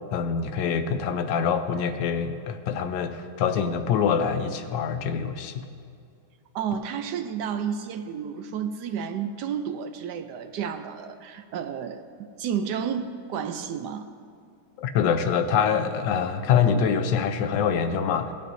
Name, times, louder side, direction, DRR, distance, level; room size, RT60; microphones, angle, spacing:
voice 1, 0.1-5.6 14.8-18.3, left 7 dB, 85° left, 8 dB, 1.3 m, -25 dB
voice 2, 6.5-12.0 12.4-14.1, right 7 dB, 75° right, 7 dB, 1.2 m, -31 dB
17.5 x 8.9 x 2.6 m, 2.4 s
omnidirectional pair, 1.9 m